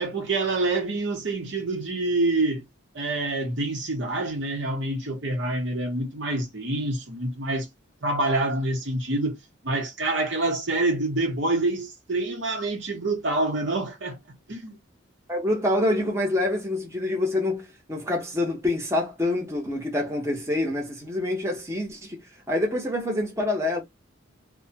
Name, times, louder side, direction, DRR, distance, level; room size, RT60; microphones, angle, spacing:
voice 1, 0.0-2.6 2.9-7.7 8.0-9.4 9.6-14.2 14.5-14.8, right 2 dB, 65° right, 0.9 m, -26 dB
voice 2, 15.3-22.2 22.5-23.8, left 1 dB, 15° right, 0.8 m, -26 dB
2.7 x 2.2 x 2.7 m
head